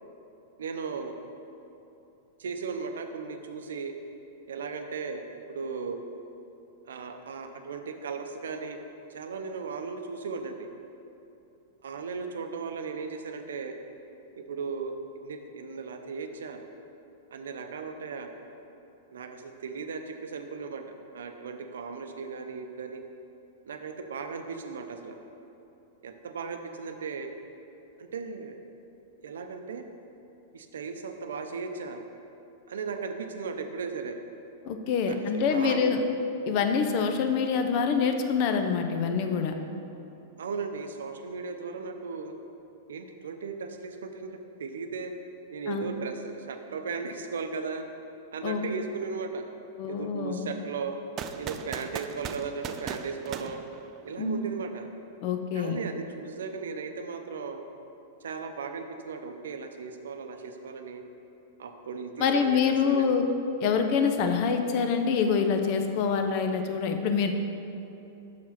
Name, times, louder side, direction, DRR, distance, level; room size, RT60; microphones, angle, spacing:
voice 1, 0.6-1.1 2.4-3.9 4.5-5.2 5.5-6.0 6.8-8.8 9.1-10.7 11.8-13.7 14.5-16.6 17.3-18.3 19.1-20.8 21.1-23.0 23.7-25.2 26.0-27.3 28.0-28.6 29.2-29.8 30.5-32.0 32.7-34.1 35.1-35.9 40.4-42.3 42.9-45.1 45.5-47.8 48.3-49.4 49.9-51.0 51.3-53.6 54.0-54.9 55.5-57.6 58.2-61.0 61.6-63.1, right 5 dB, 80° right, 6 dB, 0.6 m, -36 dB
voice 2, 34.6-36.0 36.5-39.6 45.7-45.9 48.4-48.7 49.8-50.5 54.2-54.4 55.2-55.8 62.2-63.3 63.6-67.3, left 6 dB, 50° left, 6 dB, 0.7 m, -26 dB
sound 1, 51.2-54.4, right 8 dB, 35° right, 0.3 m, -38 dB
6.1 x 4.7 x 5.7 m, 2.9 s
hypercardioid pair, 120°, 0 cm